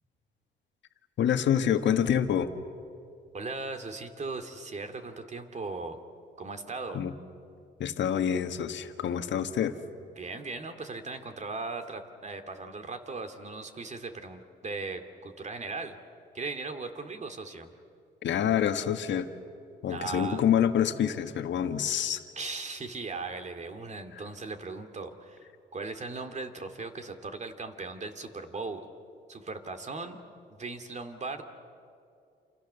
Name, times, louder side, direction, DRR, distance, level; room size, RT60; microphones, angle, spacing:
voice 1, 1.2-2.5 6.9-7.1 7.8-9.7 18.2-19.3 19.8-22.2, left 9 dB, 65° left, 8 dB, 1.6 m, -27 dB
voice 2, 3.3-6.0 6.4-7.0 10.2-16.0 16.3-17.7 19.9-20.4 22.4-28.9 29.3-30.2 30.5-31.4, right 3 dB, 35° right, 7 dB, 2.6 m, -38 dB
28.5 x 28.0 x 6.9 m, 2.4 s
cardioid pair, 90°, 20 cm